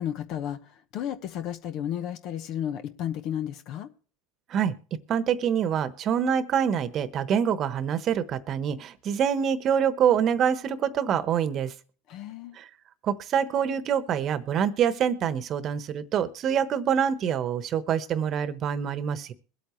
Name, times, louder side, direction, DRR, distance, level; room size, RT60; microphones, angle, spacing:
voice 1, 0.0-3.9 12.1-12.6, left 10 dB, 55° left, 10 dB, 1.1 m, -33 dB
voice 2, 5.1-11.7 12.6-12.7 13.0-19.3, right 8 dB, 40° right, 14 dB, 1.1 m, -25 dB
22.5 x 8.4 x 3.1 m, 0.41 s
supercardioid pair, 105°, 0 cm